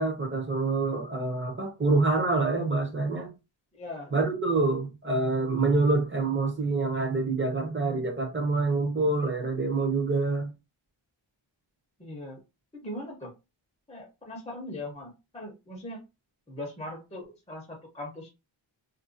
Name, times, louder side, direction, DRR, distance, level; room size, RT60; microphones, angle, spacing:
voice 1, 0.0-3.3 4.1-10.5, right 3 dB, 25° right, 0.6 m, -26 dB
voice 2, 3.7-4.1 12.0-12.4 12.7-13.3 13.9-16.0 16.5-18.3, left 1 dB, 15° left, 0.6 m, -40 dB
2.5 x 2.2 x 2.5 m
wide cardioid pair, 180°, 48 cm